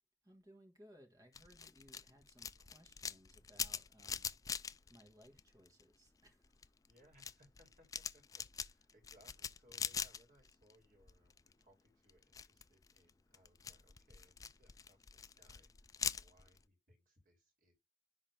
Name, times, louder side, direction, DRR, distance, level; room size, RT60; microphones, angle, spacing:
voice 1, 0.2-6.7, equal, 20° right, 1.6 m, -64 dB
sound 1, 1.3-5.9 6.3-10.7 11.0-11.6 12.1-16.6, left 7 dB, 20° left, 0.3 m, -44 dB
voice 2, 6.9-17.7, equal, 50° right, 2.9 m, -69 dB
10.5 x 3.7 x 3.4 m
head